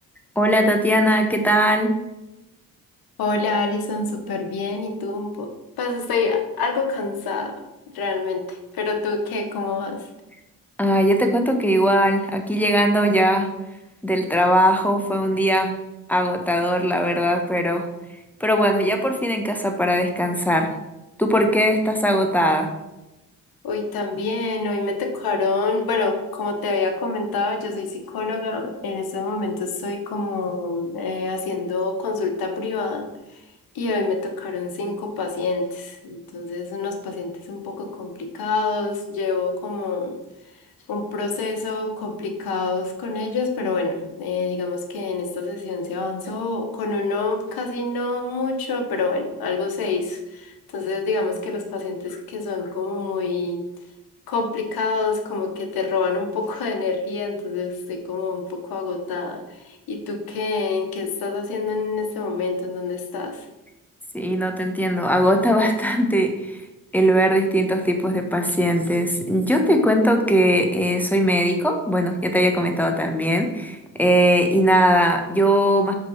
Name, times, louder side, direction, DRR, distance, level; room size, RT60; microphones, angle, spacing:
voice 1, 0.3-1.9 10.8-13.5 14.0-15.7 16.1-17.9 18.4-20.7 21.2-22.7 64.1-66.6 66.9-75.9, equal, 5° left, 4 dB, 1.3 m, -20 dB
voice 2, 3.2-5.5 5.8-7.5 7.9-10.0 23.6-33.1 33.7-40.2 40.9-53.6 54.3-59.4 59.9-63.4, left 3 dB, 85° left, 5 dB, 1.4 m, -26 dB
6.2 x 5.4 x 5.7 m, 0.97 s
cardioid pair, 95°, 35 cm